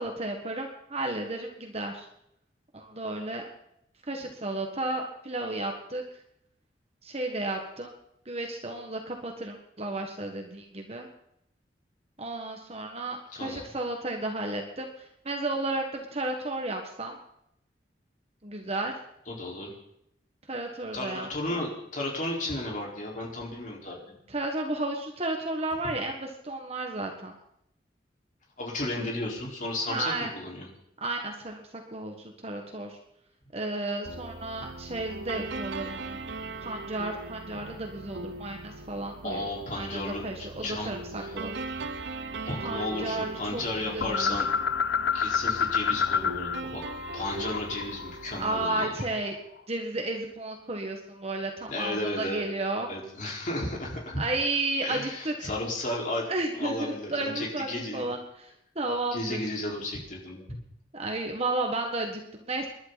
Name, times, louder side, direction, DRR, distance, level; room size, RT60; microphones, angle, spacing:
voice 1, 0.0-2.1 2.7-3.4 4.1-6.0 7.0-7.9 8.2-11.1 12.2-17.2 18.4-18.9 20.5-21.6 24.3-27.3 29.9-30.3 31.0-31.6 31.9-33.0 33.5-36.2 36.6-41.5 42.6-44.4 48.4-49.3 49.7-52.9 54.2-55.5 56.3-59.4 60.9-62.7, right 2 dB, 35° right, 2 dB, 1.6 m, -33 dB
voice 2, 13.3-13.7 19.3-19.7 20.9-24.2 28.6-30.7 39.2-40.2 40.6-40.9 41.2-41.3 42.5-44.5 45.1-46.8 47.1-48.9 51.7-52.4 52.9-54.2 54.8-56.3 56.5-58.1 59.1-60.5, left 1 dB, 45° left, -2 dB, 4.6 m, -33 dB
sound 1, 34.0-48.7, right 3 dB, 80° right, 0.9 m, -40 dB
sound 2, 44.0-46.6 46.9-49.2, left 6 dB, 80° left, 0.5 m, -29 dB
28.0 x 11.5 x 4.1 m, 0.76 s
head